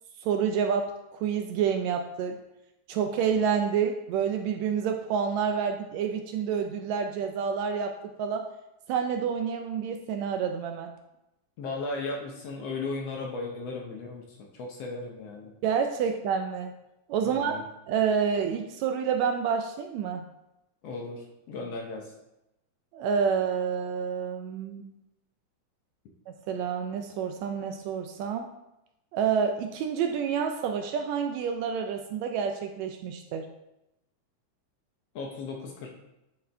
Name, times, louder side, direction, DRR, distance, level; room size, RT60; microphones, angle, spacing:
voice 1, 0.2-2.4 2.9-8.5 8.9-10.9 15.6-16.7 17.1-17.5 17.9-20.2 22.9-24.8 26.5-28.5 29.1-33.5, right 7 dB, 80° right, 5 dB, 1.6 m, -28 dB
voice 2, 11.6-15.5 17.2-17.6 20.8-22.1 35.1-35.9, left 3 dB, 70° left, 0 dB, 1.5 m, -36 dB
11.0 x 4.4 x 3.3 m, 0.90 s
omnidirectional pair, 3.6 m